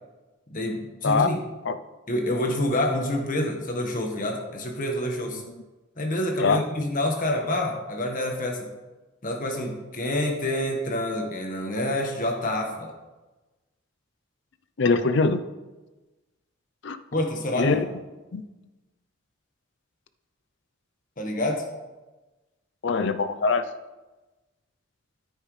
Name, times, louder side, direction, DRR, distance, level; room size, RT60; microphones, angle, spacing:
voice 1, 0.5-1.4 2.1-5.4 6.0-8.7 9.2-12.9 17.1-17.8 21.2-21.6, left 1 dB, 40° left, 2 dB, 1.4 m, -27 dB
voice 2, 14.8-15.4 16.8-17.0 17.5-17.9 18.3-18.4 22.8-23.6, left 4 dB, 60° left, 11 dB, 0.5 m, -22 dB
9.7 x 9.1 x 3.3 m, 1.2 s
head